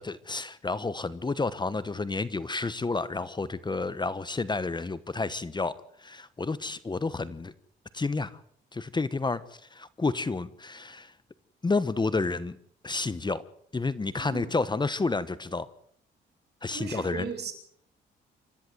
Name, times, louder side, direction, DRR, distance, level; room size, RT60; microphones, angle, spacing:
voice 1, 0.0-7.5 7.9-8.4 8.7-11.1 11.6-12.6 12.8-13.4 13.7-15.7 16.6-17.3, left 3 dB, 20° left, 16 dB, 1.2 m, -30 dB
voice 2, 14.2-14.5 16.7-17.5, right 6 dB, 55° right, 5 dB, 7.7 m, -37 dB
28.0 x 14.0 x 8.0 m, 0.65 s
cardioid pair, 90°, 20 cm